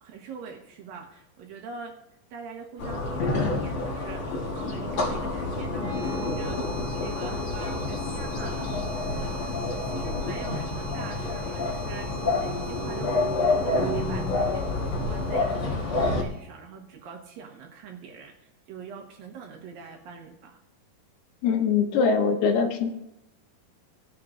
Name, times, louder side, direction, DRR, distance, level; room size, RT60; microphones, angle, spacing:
voice 1, 0.0-2.0 2.3-9.4 9.8-20.6, right 5 dB, 70° right, 1 dB, 2.9 m, -43 dB
sound 1, 2.8-16.2, left 2 dB, 55° left, 1.5 m, -28 dB
sound 2, 5.6-16.6, equal, 90° right, 0.8 m, -45 dB
voice 2, 21.4-22.9, left 5 dB, 80° left, 4 dB, 3.1 m, -22 dB
17.5 x 9.8 x 2.6 m, 0.88 s
omnidirectional pair, 4.5 m